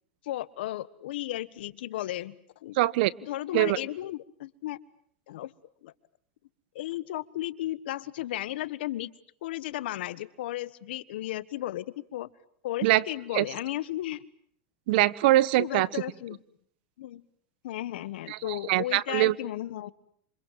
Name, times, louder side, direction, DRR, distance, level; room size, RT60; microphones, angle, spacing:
voice 1, 0.2-2.8 3.2-4.8 5.3-5.5 5.8-5.9 6.7-9.1 9.4-12.3 12.6-14.2 15.6-16.4 17.0-17.3 17.6-19.9, left 14 dB, 80° left, 17 dB, 1.4 m, -34 dB
voice 2, 2.7-3.1 3.5-3.8 12.8-13.0 13.3-13.4 14.9-15.9 18.3-19.3, right 17 dB, 65° right, 20 dB, 1.2 m, -23 dB
27.5 x 26.5 x 7.5 m, 0.65 s
supercardioid pair, 115°, 6 cm